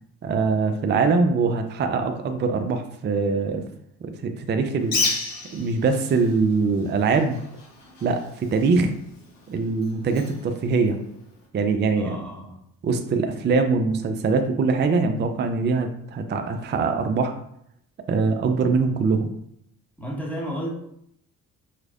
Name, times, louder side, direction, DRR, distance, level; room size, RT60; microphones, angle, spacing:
voice 1, 0.2-3.6 4.0-5.0 5.5-7.4 8.0-8.9 9.5-11.0 11.5-12.2 12.8-17.3 18.1-19.3, right 4 dB, 25° right, 6 dB, 0.5 m, -23 dB
Bird, 4.8-11.5, left 3 dB, 50° left, 1.3 m, -33 dB
voice 2, 11.9-12.6 20.0-20.7, equal, 5° left, -3 dB, 1.6 m, -32 dB
4.8 x 3.2 x 2.5 m, 0.72 s
hypercardioid pair, 45°, 43 cm